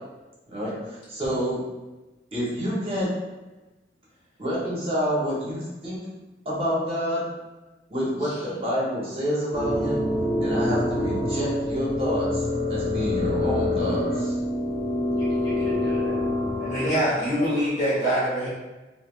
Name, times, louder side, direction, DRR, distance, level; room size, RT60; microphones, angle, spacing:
voice 1, 0.5-1.6 2.3-3.1 4.4-6.0 6.4-7.2 7.9-10.0 10.4-14.3, equal, 30° right, -7 dB, 1.0 m, -28 dB
sound 1, 9.5-16.9, left 1 dB, 65° left, 0.9 m, -26 dB
voice 2, 15.1-16.2 16.6-17.5, left 1 dB, 85° left, -7 dB, 1.4 m, -34 dB
voice 3, 16.7-18.5, equal, 45° left, -8 dB, 1.3 m, -24 dB
3.3 x 2.7 x 2.4 m, 1.1 s
head